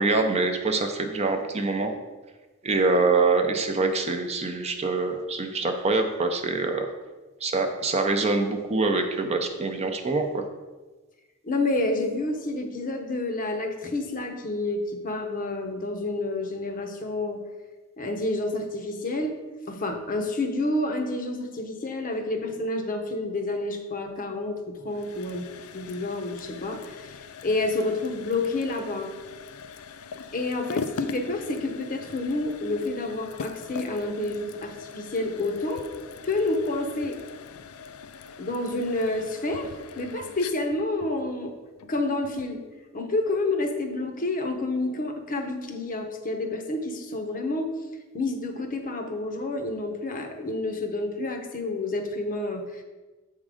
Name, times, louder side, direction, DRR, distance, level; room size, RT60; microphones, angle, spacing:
voice 1, 0.0-1.9 2.6-6.9 7.4-10.4, right 3 dB, 30° right, 5 dB, 0.5 m, -25 dB
voice 2, 11.4-17.4 18.0-19.4 19.7-25.5 25.7-29.1 30.3-35.9 36.2-37.2 38.4-41.5 41.9-42.6 42.9-47.7 48.1-52.8, left 2 dB, 40° left, 5 dB, 0.7 m, -29 dB
sound 1, 24.9-42.6, left 5 dB, 70° left, 0.4 m, -41 dB
7.3 x 3.7 x 4.9 m, 1.2 s
head